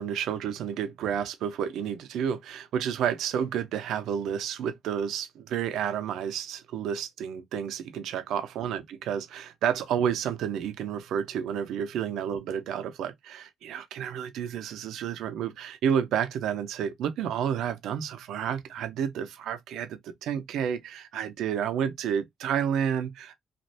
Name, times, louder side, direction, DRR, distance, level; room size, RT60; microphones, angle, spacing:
voice 1, 0.0-23.4, right 8 dB, 80° right, 0.6 m, -30 dB
3.1 x 2.5 x 2.7 m
cardioid pair, 90°, 0 cm